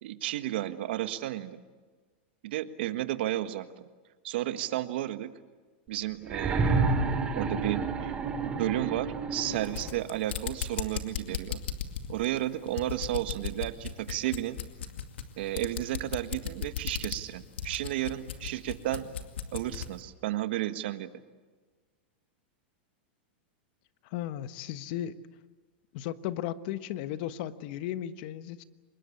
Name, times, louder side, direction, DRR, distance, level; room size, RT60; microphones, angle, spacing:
voice 1, 0.0-1.6 2.4-3.8 4.2-5.3 5.9-11.6 12.1-14.6 15.4-19.1 19.5-21.1, right 14 dB, 70° right, 10 dB, 1.6 m, -33 dB
sound 1, 6.2-10.1 11.3-11.4, right 4 dB, 20° right, 2.7 m, -30 dB
sound 2, 9.5-20.0, left 8 dB, 85° left, 2.3 m, -37 dB
voice 2, 24.0-25.2 25.9-28.6, left 12 dB, 55° left, 12 dB, 1.3 m, -35 dB
25.5 x 21.5 x 8.5 m, 1.4 s
supercardioid pair, 140°, 6 cm